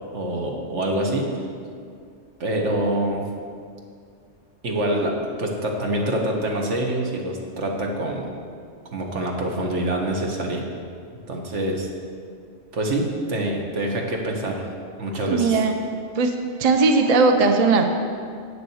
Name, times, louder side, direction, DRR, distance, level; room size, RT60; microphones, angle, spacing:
voice 1, 0.1-1.3 2.4-3.3 4.6-8.3 8.9-10.6 11.3-11.9 12.7-14.6 15.0-15.6, right 1 dB, 70° right, 0 dB, 1.6 m, -25 dB
voice 2, 15.2-15.8 16.1-16.3 16.6-17.8, right 4 dB, 40° right, 5 dB, 0.6 m, -18 dB
8.4 x 6.9 x 7.1 m, 2.2 s
omnidirectional pair, 1.3 m